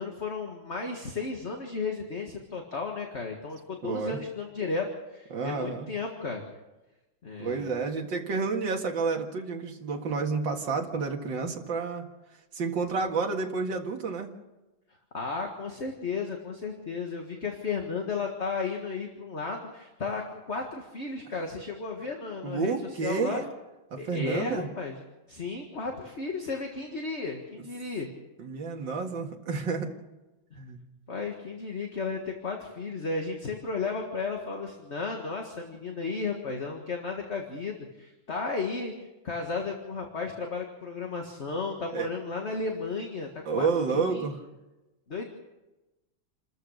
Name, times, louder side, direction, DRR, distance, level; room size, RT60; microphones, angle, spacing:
voice 1, 0.0-4.9 5.1-6.4 7.2-7.7 15.1-22.7 23.0-23.4 23.9-25.0 25.3-28.1 31.1-38.9 39.2-44.3 45.1-45.3, left 4 dB, 35° left, 2 dB, 1.9 m, -34 dB
voice 2, 3.8-4.2 5.3-5.9 7.4-12.0 12.5-14.3 22.4-23.5 23.9-24.7 28.4-29.9 30.6-30.8 41.9-42.1 43.5-44.4, right 4 dB, 60° right, 2 dB, 2.6 m, -30 dB
28.5 x 14.0 x 6.6 m, 1.1 s
omnidirectional pair, 2.3 m